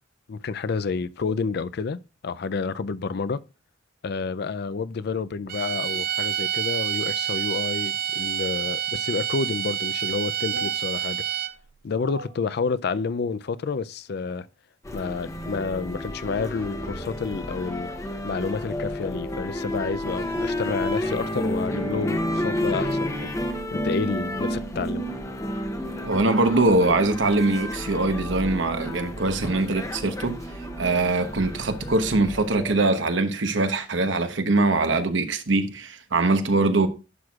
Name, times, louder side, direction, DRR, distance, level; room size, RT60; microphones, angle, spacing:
voice 1, 0.3-3.4 4.0-11.2 11.8-14.5 14.9-17.9 18.2-23.4 23.7-25.1, left 4 dB, 60° left, 0.4 m, -29 dB
sound 1, 5.5-11.7, right 10 dB, 55° right, 0.5 m, -28 dB
sound 2, 14.8-32.7, equal, 15° left, 0.8 m, -31 dB
voice 2, 26.0-30.4 30.8-36.9, right 2 dB, 80° right, 1.0 m, -22 dB
11.0 x 6.1 x 2.4 m
head